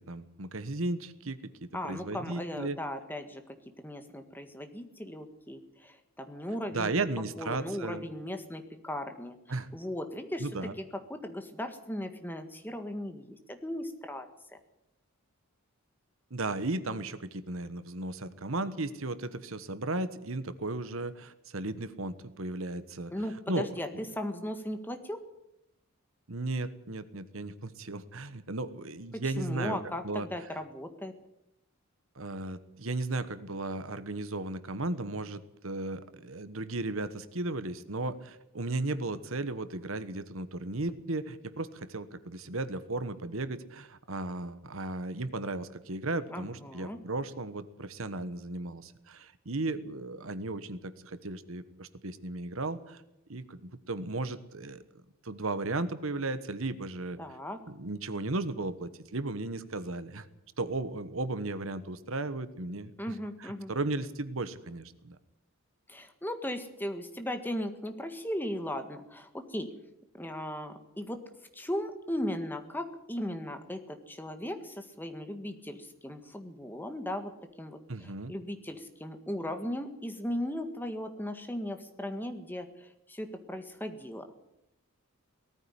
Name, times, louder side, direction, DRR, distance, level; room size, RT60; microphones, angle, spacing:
voice 1, 0.1-2.8 6.7-8.1 9.5-9.7 10.4-10.7 16.3-23.1 23.5-23.7 23.9-24.0 26.3-30.3 32.1-53.0 53.3-54.8 55.2-57.2 57.7-60.3 60.6-65.2 77.9-78.3, right 2 dB, 70° right, 13 dB, 1.3 m, -35 dB
voice 2, 1.7-3.4 3.8-6.9 7.4-9.4 9.7-10.5 11.1-14.3 23.1-25.2 29.4-31.1 46.3-47.0 57.2-57.6 63.0-63.7 65.9-69.7 70.1-71.2 71.5-77.3 77.6-84.3, left 1 dB, 10° left, 7 dB, 1.6 m, -37 dB
18.5 x 14.0 x 10.0 m, 0.83 s
head